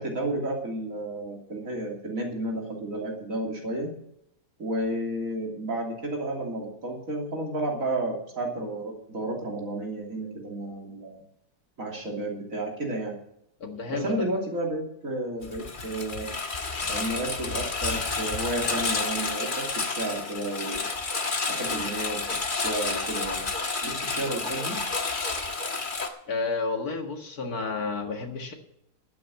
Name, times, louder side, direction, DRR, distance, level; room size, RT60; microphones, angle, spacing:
voice 1, 0.0-3.9 4.6-11.2 11.8-13.2 13.9-16.3 16.8-20.9 21.5-23.5 23.8-24.8, right 1 dB, 55° right, 0 dB, 3.5 m, -32 dB
voice 2, 13.6-14.1 26.3-28.5, left 4 dB, 70° left, 3 dB, 2.3 m, -31 dB
Engine, 15.4-26.1, left 4 dB, 35° left, 1.4 m, -30 dB
12.0 x 8.8 x 7.4 m, 0.78 s
omnidirectional pair, 1.7 m